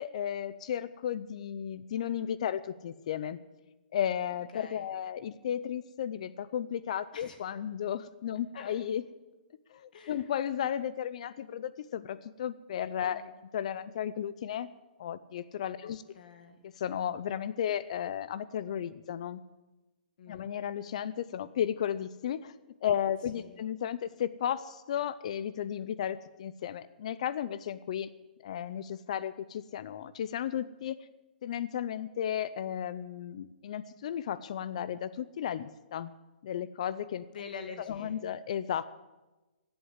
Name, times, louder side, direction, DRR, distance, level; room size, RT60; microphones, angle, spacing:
voice 1, 0.0-3.4 3.9-9.0 9.7-13.2 13.5-14.7 15.0-16.0 16.6-19.4 20.3-22.5 22.8-28.1 28.4-31.0 31.4-36.1 36.4-37.3 37.9-38.8, left 9 dB, 45° left, 16 dB, 0.5 m, -34 dB
voice 2, 4.5-4.9 7.1-7.4 8.5-8.7 9.9-10.3 13.1-13.3 16.1-16.6 20.2-20.5 23.3-23.6 37.3-38.2, left 5 dB, 60° left, 7 dB, 2.1 m, -46 dB
14.5 x 7.9 x 9.4 m, 1.1 s
hypercardioid pair, 170°, 5 cm